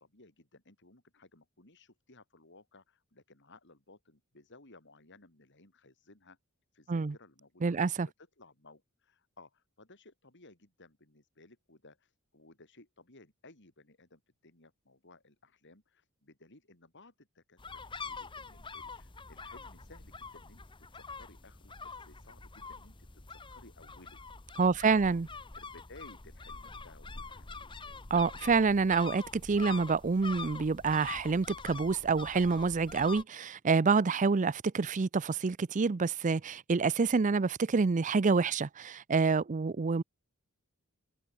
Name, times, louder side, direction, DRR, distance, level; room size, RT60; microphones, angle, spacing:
voice 1, 0.0-6.4 6.7-7.8 8.2-24.2 24.6-25.1 25.5-28.0, left 2 dB, 55° left, 4.7 m, -58 dB
voice 2, 7.6-8.1 24.6-25.3 28.1-40.0, right 4 dB, 35° right, 0.5 m, -27 dB
sound 1, 17.6-33.2, left 4 dB, 20° left, 1.0 m, -45 dB
head